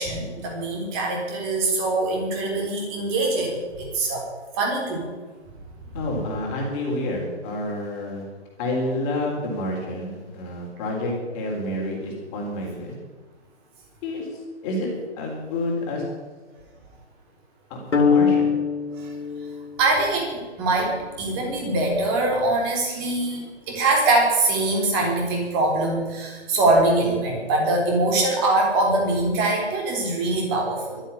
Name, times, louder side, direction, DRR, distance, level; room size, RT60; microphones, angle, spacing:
voice 1, 0.0-4.3 4.6-5.1 19.0-19.1 19.8-31.0, right 2 dB, 20° right, 0 dB, 3.6 m, -23 dB
voice 2, 5.9-8.2 8.6-12.9 14.0-14.3 14.6-14.9 15.2-16.0 17.7-18.5, left 1 dB, 20° left, -1 dB, 3.5 m, -29 dB
sound 1, 17.9-20.2, left 5 dB, 85° left, 2.1 m, -23 dB
12.5 x 10.0 x 10.0 m, 1.3 s
hypercardioid pair, 155°, 34 cm